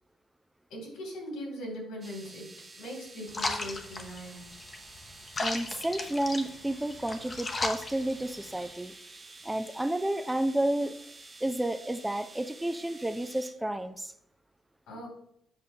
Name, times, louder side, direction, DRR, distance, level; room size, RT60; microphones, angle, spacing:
voice 1, 0.7-2.5 2.8-4.5 14.9-15.1, equal, 85° left, -1 dB, 2.8 m, -40 dB
sound 1, 2.0-13.5, right 3 dB, 30° right, 1.0 m, -50 dB
sound 2, 3.3-8.7, left 2 dB, 35° left, 0.8 m, -36 dB
voice 2, 5.4-9.0 9.4-11.0 11.4-14.1, right 1 dB, 10° right, 10 dB, 0.4 m, -31 dB
8.1 x 5.0 x 2.8 m, 0.74 s
cardioid pair, 90°, 0 cm